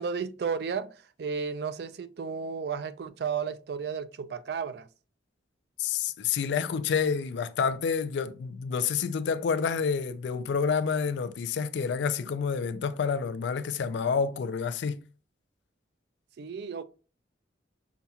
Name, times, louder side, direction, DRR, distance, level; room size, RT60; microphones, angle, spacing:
voice 1, 0.0-4.9 16.4-16.8, right 6 dB, 60° right, 0.3 m, -33 dB
voice 2, 5.8-15.0, left 6 dB, 75° left, 0.3 m, -28 dB
5.6 x 2.3 x 2.7 m
head